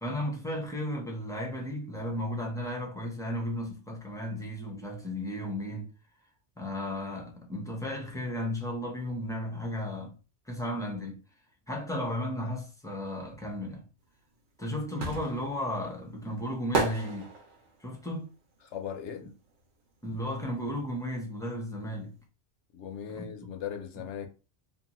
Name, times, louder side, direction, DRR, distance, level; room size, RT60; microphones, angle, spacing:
voice 1, 0.0-5.9 6.6-10.1 10.5-11.2 11.7-13.8 14.6-17.3 17.8-18.3 20.0-22.1 23.1-23.5, left 1 dB, 5° left, 0.5 m, -34 dB
sound 1, 14.1-20.0 20.2-21.8 22.1-22.2, right 3 dB, 85° right, 1.1 m, -35 dB
voice 2, 18.7-19.3 22.7-24.3, left 8 dB, 80° left, 0.9 m, -38 dB
2.6 x 2.5 x 2.9 m
omnidirectional pair, 1.2 m